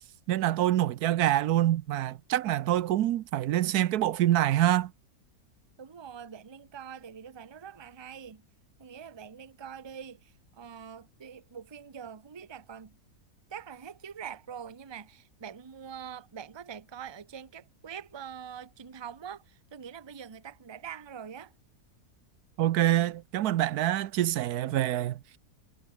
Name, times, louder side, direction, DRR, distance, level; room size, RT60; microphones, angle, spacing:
voice 1, 0.3-4.9 22.6-25.2, right 13 dB, 80° right, 1.2 m, -26 dB
voice 2, 5.8-8.4 8.8-10.3 10.6-12.9 13.5-21.5, right 8 dB, 25° right, 0.6 m, -44 dB
omnidirectional pair, 1.6 m